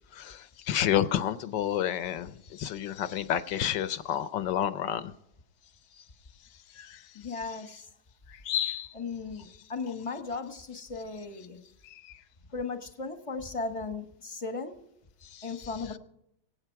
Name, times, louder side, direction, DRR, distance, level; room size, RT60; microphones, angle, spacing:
voice 1, 0.1-5.1 6.8-7.0 8.3-8.9 11.9-12.0 15.3-15.5, left 10 dB, 70° left, 13 dB, 1.3 m, -30 dB
voice 2, 7.1-7.8 8.9-11.6 12.5-14.8 15.4-16.0, left 4 dB, 20° left, 7 dB, 1.0 m, -36 dB
24.0 x 8.7 x 4.6 m, 0.79 s
omnidirectional pair, 2.2 m